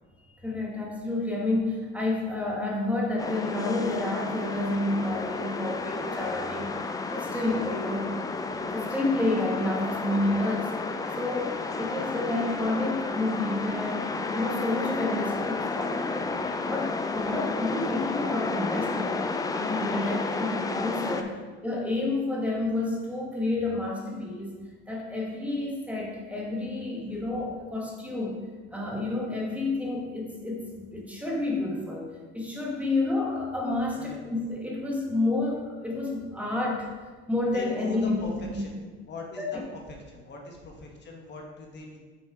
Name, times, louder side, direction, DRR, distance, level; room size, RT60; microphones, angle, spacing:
voice 1, 0.3-8.1 8.4-10.7 11.2-21.3 21.6-24.6 24.9-28.4 28.7-36.9 37.3-38.6 39.4-39.6, left 2 dB, 5° right, -2 dB, 1.3 m, -30 dB
sound 1, 3.2-21.2, left 3 dB, 10° left, 0.4 m, -32 dB
voice 2, 10.9-11.2 11.6-12.2 21.2-21.5 27.0-27.2 33.9-34.2 36.3-36.7 37.5-38.8 39.1-42.0, left 2 dB, 35° left, 0 dB, 1.2 m, -42 dB
6.9 x 4.2 x 4.8 m, 1.4 s
supercardioid pair, 110°, 31 cm